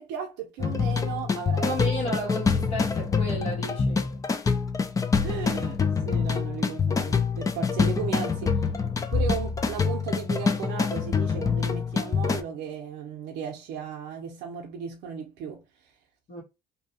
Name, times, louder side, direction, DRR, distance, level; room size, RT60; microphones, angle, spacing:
voice 1, 0.0-1.9 5.2-8.7 9.1-15.6, right 7 dB, 90° right, 0.6 m, -35 dB
sound 1, 0.6-12.4, left 5 dB, 20° left, 0.3 m, -26 dB
voice 2, 1.6-4.1 16.3-16.4, right 1 dB, 50° left, 1.2 m, -32 dB
2.7 x 2.2 x 2.7 m
cardioid pair, 110°, 17 cm